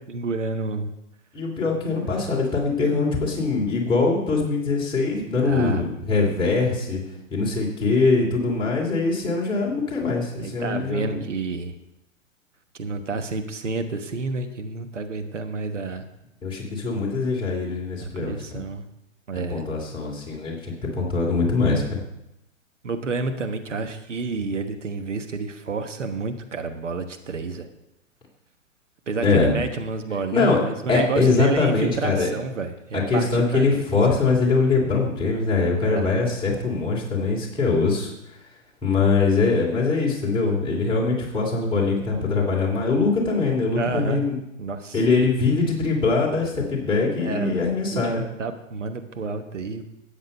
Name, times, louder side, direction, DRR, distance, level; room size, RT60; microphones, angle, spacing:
voice 1, 0.1-0.9 1.8-2.2 5.4-5.8 10.4-11.7 12.8-16.0 18.0-18.8 19.3-19.6 22.8-27.7 29.1-33.8 35.8-36.2 43.7-44.3 44.6-45.0 47.2-47.6 47.9-49.8, right 4 dB, 60° right, 6 dB, 1.3 m, -29 dB
voice 2, 1.3-7.0 7.3-11.2 16.4-18.6 19.5-22.0 29.2-29.5 30.3-30.6 30.9-32.3 32.9-38.1 38.8-44.4 44.9-48.2, left 4 dB, 10° left, -3 dB, 2.8 m, -22 dB
13.0 x 8.9 x 5.4 m, 0.88 s
figure-of-eight pair, 120°, 40 cm